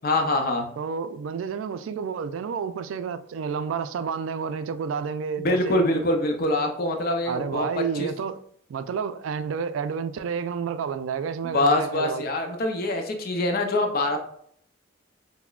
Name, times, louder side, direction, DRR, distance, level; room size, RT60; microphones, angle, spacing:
voice 1, 0.0-0.7 5.4-8.1 11.4-14.2, left 2 dB, 50° left, 0.6 m, -24 dB
voice 2, 0.8-5.8 7.2-8.4 8.7-12.3, right 6 dB, 85° right, 0.3 m, -30 dB
5.7 x 2.1 x 2.3 m
head